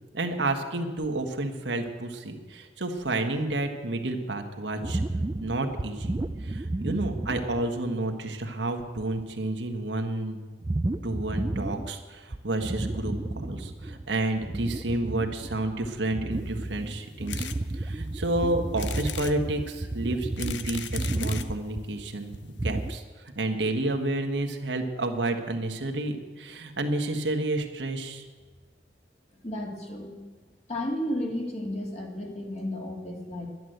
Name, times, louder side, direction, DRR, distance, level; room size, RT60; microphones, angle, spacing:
voice 1, 0.1-5.0 5.4-10.4 11.0-17.5 17.7-22.3 22.6-28.2, right 2 dB, 85° right, 4 dB, 1.6 m, -30 dB
sound 1, 4.8-7.9 8.4-8.5 8.9-9.2 10.6-12.0 12.3-14.0 14.3-23.0, right 2 dB, 20° right, 0.4 m, -32 dB
sound 2, 17.3-17.6 18.1-18.2 18.8-19.4 20.1-21.5 22.3-22.4 22.6-22.7 22.9-23.0, left 10 dB, 85° left, 0.7 m, -38 dB
voice 2, 29.4-30.2 30.7-33.5, left 1 dB, 40° left, 1 dB, 2.3 m, -33 dB
11.0 x 11.0 x 7.9 m, 1.4 s
head